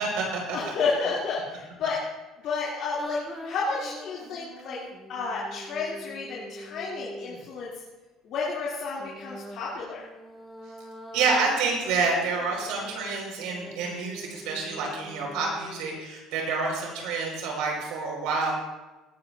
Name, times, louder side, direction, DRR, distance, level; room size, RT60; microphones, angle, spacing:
voice 1, 0.0-0.6 11.1-18.5, right 4 dB, 75° right, 0 dB, 5.4 m, -28 dB
voice 2, 0.5-2.0 2.4-3.2 3.4-4.8 5.1-7.7 8.2-10.0, left 4 dB, 55° left, -6 dB, 3.1 m, -31 dB
sound 1, 3.0-7.5 9.0-16.0, equal, 5° left, 2.3 m, -44 dB
19.0 x 12.5 x 2.8 m, 1.1 s
cardioid pair, 145°, 0 cm